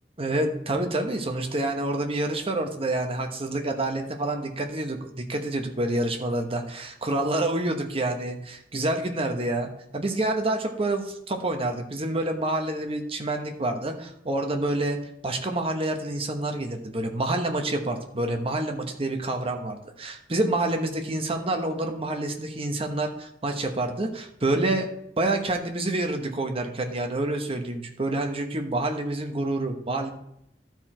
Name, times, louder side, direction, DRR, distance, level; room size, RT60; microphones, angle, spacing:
voice 1, 0.2-15.0 15.2-24.9 25.2-30.1, right 2 dB, 35° right, 4 dB, 1.0 m, -28 dB
12.5 x 4.6 x 4.4 m, 0.78 s
head